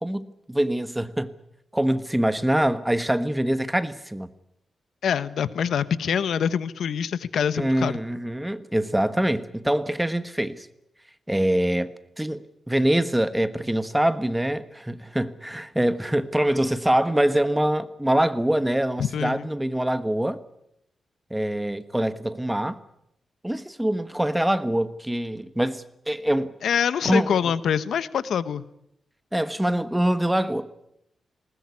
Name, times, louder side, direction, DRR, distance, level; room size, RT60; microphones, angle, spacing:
voice 1, 0.0-1.3 1.7-4.3 7.5-10.7 11.3-20.4 21.3-22.8 23.4-26.5 27.0-27.4 29.3-30.7, right 1 dB, 5° right, 1.3 m, -24 dB
voice 2, 5.0-8.0 19.0-19.5 26.6-28.6, left 8 dB, 90° left, 1.0 m, -25 dB
20.0 x 19.5 x 9.7 m
wide cardioid pair, 110°, 0 cm